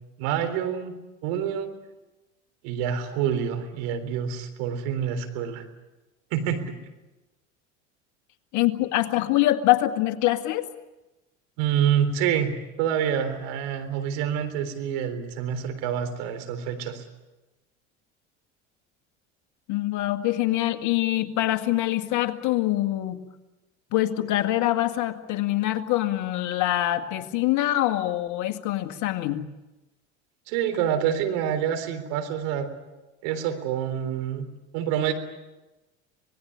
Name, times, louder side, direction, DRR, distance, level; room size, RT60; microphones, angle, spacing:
voice 1, 0.2-0.9 1.2-1.8 2.6-5.6 6.3-6.8 11.6-12.5 12.8-17.0 30.5-32.7 33.2-34.5 34.7-35.1, right 9 dB, 65° right, 7 dB, 3.8 m, -27 dB
voice 2, 8.5-10.7 19.7-23.2 23.9-29.5, left 15 dB, 55° left, 9 dB, 2.0 m, -24 dB
26.0 x 20.0 x 8.7 m, 1.1 s
hypercardioid pair, 75°, 35 cm